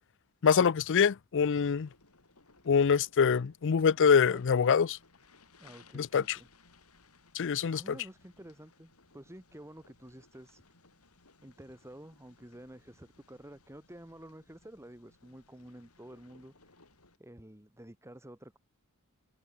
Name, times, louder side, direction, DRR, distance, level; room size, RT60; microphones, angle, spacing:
voice 1, 0.4-1.9 2.7-4.9 5.9-6.4 7.3-7.8, left 6 dB, 60° left, 0.5 m, -25 dB
sound 1, 1.5-17.2, left 3 dB, 80° left, 7.1 m, -63 dB
voice 2, 4.0-4.7 5.6-6.5 7.7-10.6 11.4-16.5 17.2-18.6, right 1 dB, 15° right, 2.7 m, -50 dB
head